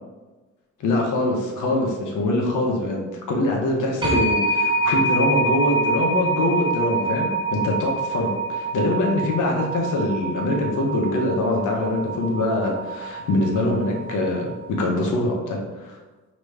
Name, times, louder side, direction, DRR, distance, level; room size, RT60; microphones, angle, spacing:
voice 1, 0.8-16.0, left 2 dB, 80° left, 0 dB, 1.1 m, -23 dB
sound 1, 4.0-14.6, right 3 dB, 15° right, 0.9 m, -26 dB
5.1 x 3.0 x 3.4 m, 1.2 s
cardioid pair, 90°, 30 cm